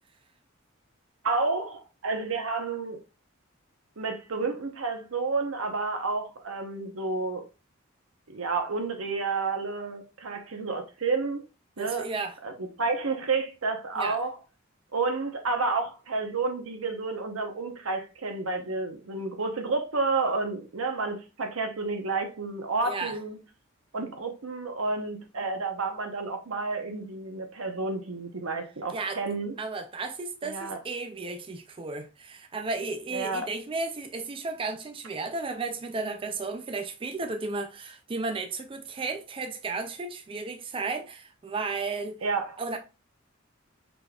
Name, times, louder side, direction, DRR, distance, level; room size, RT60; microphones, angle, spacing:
voice 1, 1.2-3.0 4.0-7.4 8.3-11.4 11.8-12.1 12.4-14.3 14.9-23.4 23.9-29.5 30.4-30.8 33.1-33.5 42.2-42.6, right 3 dB, 85° right, 0.9 m, -30 dB
voice 2, 11.8-12.3 14.0-14.2 22.8-23.2 28.9-29.2 29.6-42.2 42.6-42.8, right 3 dB, 25° right, 0.4 m, -34 dB
5.0 x 3.8 x 2.3 m
head